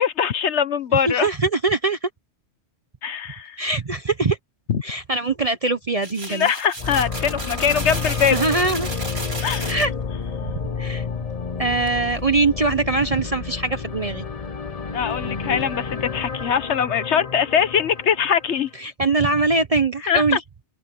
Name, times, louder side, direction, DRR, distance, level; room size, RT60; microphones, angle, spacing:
voice 1, 0.0-1.3 3.0-3.6 4.7-4.8 6.3-8.4 9.4-9.8 14.9-18.7 20.1-20.4, left 7 dB, 75° left, 1.3 m, -22 dB
voice 2, 1.1-2.1 3.6-4.4 4.8-6.5 8.3-8.9 9.7-9.9 10.8-11.0 11.6-14.2 18.8-20.4, right 3 dB, 35° right, 1.0 m, -22 dB
sound 1, 6.0-9.9 11.8-11.9 12.2-12.4 12.9-13.1 15.1-15.2 15.6-15.7, right 1 dB, 60° right, 5.1 m, -33 dB
sound 2, 6.8-18.7, left 5 dB, 35° left, 0.9 m, -30 dB
open air
omnidirectional pair, 1.2 m